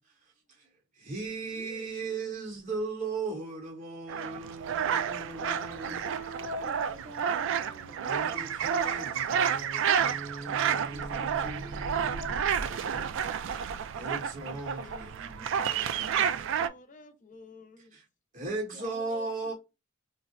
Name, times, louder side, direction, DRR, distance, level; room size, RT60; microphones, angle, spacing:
voice 1, 0.2-0.7 0.9-6.0 8.0-12.4 12.9-13.1 13.6-16.5 17.9-18.0 18.3-19.5, right 3 dB, 35° right, 0.9 m, -38 dB
sound 1, 4.1-16.7, right 8 dB, 60° right, 0.3 m, -30 dB
voice 2, 5.3-8.6 10.9-13.7 18.4-19.5, equal, 80° right, 1.3 m, -45 dB
voice 3, 7.5-8.1 14.3-15.1 15.6-18.0, left 3 dB, 40° left, 0.6 m, -52 dB
3.9 x 2.0 x 2.3 m
head